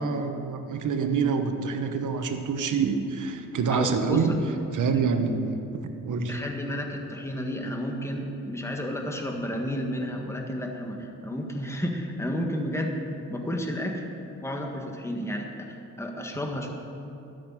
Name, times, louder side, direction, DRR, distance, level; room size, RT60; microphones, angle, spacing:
voice 1, 0.0-4.4 4.7-5.6 6.0-6.4, right 5 dB, 70° right, 6 dB, 1.3 m, -26 dB
voice 2, 3.7-4.2 6.3-13.0 13.3-14.0 14.4-16.7, equal, 10° left, 1 dB, 1.6 m, -31 dB
12.5 x 6.7 x 9.9 m, 2.8 s
cardioid pair, 90°, 32 cm